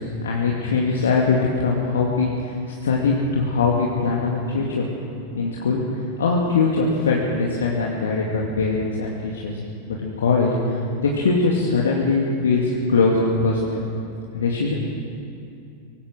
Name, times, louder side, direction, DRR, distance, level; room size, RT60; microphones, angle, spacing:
voice 1, 0.0-4.9 5.3-5.8 6.2-9.6 9.9-13.8 14.3-14.7, left 4 dB, 65° left, -3 dB, 2.6 m, -22 dB
24.0 x 18.5 x 6.5 m, 2.5 s
figure-of-eight pair, 90°, 0 cm